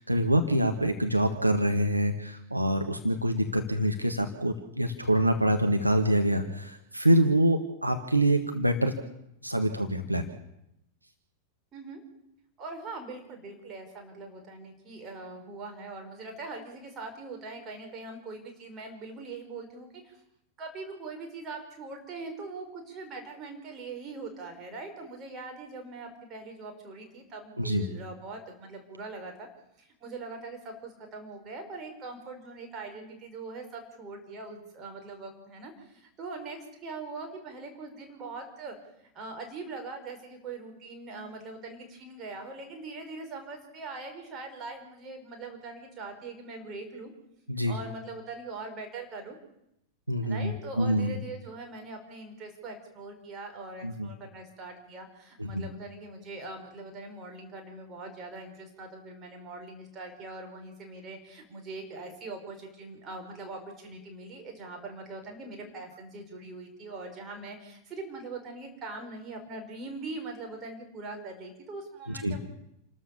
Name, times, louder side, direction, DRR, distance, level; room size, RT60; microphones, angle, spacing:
voice 1, 0.0-9.0 9.4-10.3 27.6-27.8 47.5-47.8 50.1-51.1 53.8-54.1 55.4-55.6 72.1-72.3, right 1 dB, 85° right, 6 dB, 1.5 m, -26 dB
voice 2, 11.7-12.0 12.6-20.1 20.6-29.5 29.8-38.8 39.1-47.1 47.7-49.4 50.2-72.4, right 3 dB, 30° right, 3 dB, 5.6 m, -42 dB
28.0 x 13.0 x 7.1 m, 0.82 s
figure-of-eight pair, 90°, 0 cm